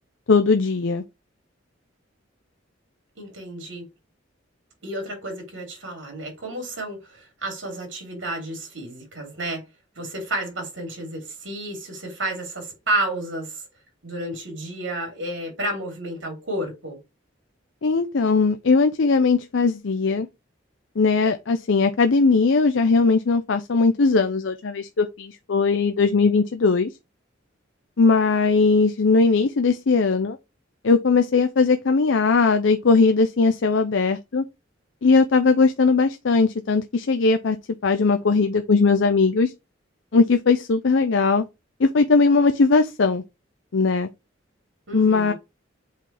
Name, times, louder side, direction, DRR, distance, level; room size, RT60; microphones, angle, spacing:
voice 1, 0.3-1.0 17.8-20.3 21.0-26.9 28.0-30.4 30.8-34.4 35.0-37.6 37.8-39.5 40.1-41.4 41.8-43.2 43.7-44.1 44.9-45.3, left 4 dB, 70° left, 0.6 m, -19 dB
voice 2, 3.2-3.8 4.8-9.6 9.9-13.6 14.0-17.0 44.9-45.3, right 1 dB, 70° right, 3.4 m, -31 dB
7.4 x 4.0 x 3.4 m
head